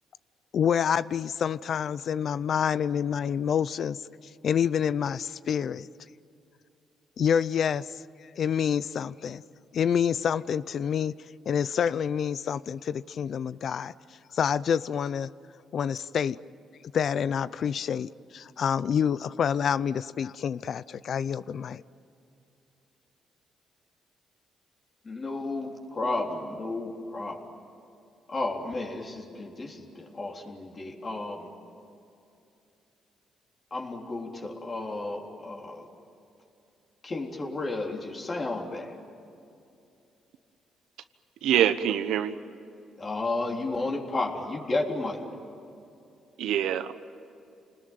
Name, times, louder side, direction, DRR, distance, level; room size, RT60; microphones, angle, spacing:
voice 1, 0.5-4.0 4.4-5.9 7.2-7.9 8.4-9.4 9.7-11.1 11.5-13.9 14.3-15.3 15.7-16.4 16.9-21.8, left 8 dB, 60° left, 18 dB, 0.5 m, -27 dB
voice 2, 25.0-27.4 28.3-31.5 33.7-35.9 37.0-39.0 43.0-45.2, left 2 dB, 35° left, 1 dB, 3.8 m, -32 dB
voice 3, 41.4-42.4 46.4-46.9, right 10 dB, 85° right, 11 dB, 1.2 m, -25 dB
29.0 x 20.0 x 9.3 m, 2.7 s
cardioid pair, 90°, 0 cm